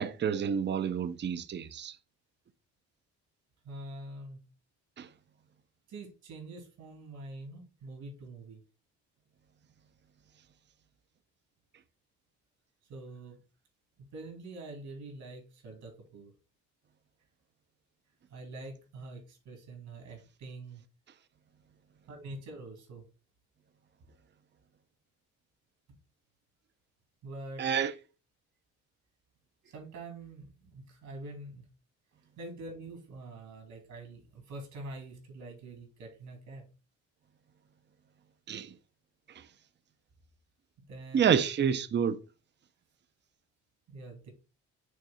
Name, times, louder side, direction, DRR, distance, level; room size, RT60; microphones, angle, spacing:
voice 1, 0.0-1.9 5.0-5.1 27.6-27.9 38.5-38.7 41.1-42.2, right 7 dB, 35° right, 0.6 m, -28 dB
voice 2, 3.6-4.5 5.9-8.6 12.9-13.4 14.0-16.3 18.3-20.8 22.1-23.0 27.2-27.7 29.7-31.7 32.4-36.7 40.9-41.4 43.9-44.3, right 2 dB, 75° right, 2.6 m, -45 dB
6.4 x 3.2 x 5.6 m
cardioid pair, 90°, 30 cm